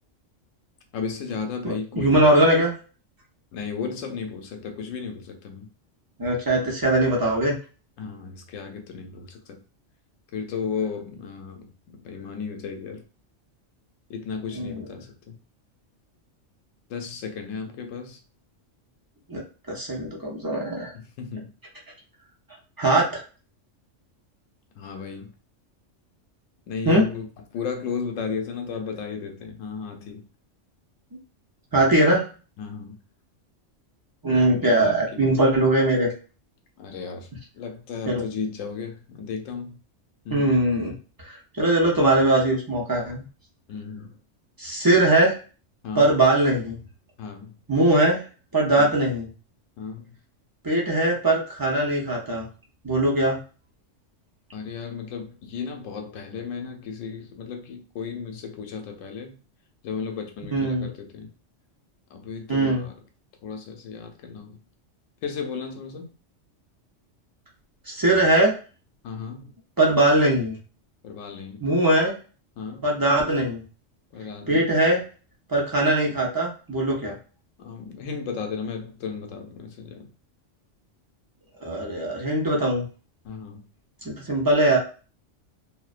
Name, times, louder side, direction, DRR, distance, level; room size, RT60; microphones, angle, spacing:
voice 1, 0.9-2.3 3.5-5.7 8.0-9.6 10.3-13.1 14.1-15.4 16.9-18.2 20.9-21.5 24.8-25.3 26.7-27.3 27.5-30.2 32.6-33.0 34.8-35.4 36.8-39.8 40.2-40.6 43.7-44.2 45.8-46.1 47.2-47.6 48.7-48.9 49.8-50.2 54.5-59.4 59.8-61.3 62.1-63.0 63.4-64.6 65.2-66.1 69.0-69.5 71.0-71.6 72.6-73.0 74.1-74.7 77.6-80.1 83.2-83.6, left 5 dB, 90° left, 1.0 m, -34 dB
voice 2, 1.6-2.7 6.2-7.5 14.5-14.8 19.3-19.4 19.7-20.9 22.8-23.2 26.8-27.0 31.7-32.2 34.2-36.1 38.1-38.2 40.3-40.9 41.2-43.2 44.6-45.4 45.9-46.8 47.7-48.2 48.5-49.3 50.6-52.5 52.8-53.4 60.5-60.9 62.5-62.9 67.9-68.5 69.8-70.6 71.6-72.1 72.8-73.6 74.5-75.0 75.5-77.2 81.6-82.8 84.0-84.8, right 1 dB, 30° right, 0.4 m, -21 dB
2.5 x 2.1 x 2.4 m
omnidirectional pair, 1.3 m